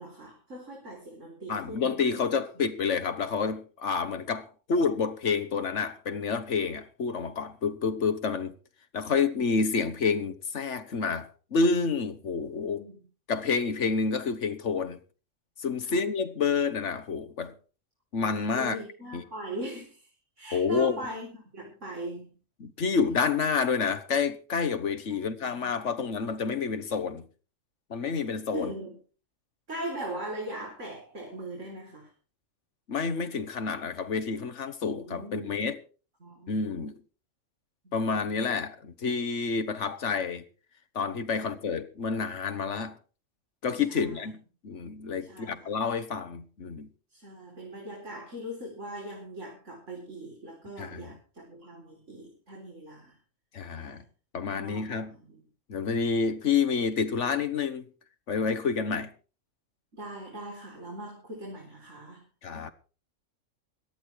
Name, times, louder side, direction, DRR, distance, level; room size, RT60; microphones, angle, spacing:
voice 1, 0.0-2.2 2.5-2.6 12.6-13.0 15.9-16.0 18.5-20.1 20.4-21.3 21.5-22.3 25.1-25.8 28.5-29.0 29.7-32.1 35.1-35.6 36.2-36.8 37.8-37.9 43.9-44.2 45.2-45.7 47.1-53.2 53.8-54.0 54.6-55.0 55.3-55.4 59.9-62.2, right 1 dB, 80° right, 4.8 m, -40 dB
voice 2, 1.5-8.6 8.9-12.8 13.3-15.0 15.6-17.5 18.1-18.8 19.1-19.2 20.5-21.0 22.6-27.2 27.9-28.7 32.9-35.8 36.5-37.0 37.9-40.4 40.9-43.0 43.6-46.9 50.8-51.2 53.5-54.0 54.3-55.2 55.7-57.8 58.3-59.1 62.4-62.7, left 5 dB, 70° left, 1.6 m, -29 dB
17.5 x 12.0 x 4.7 m
omnidirectional pair, 1.3 m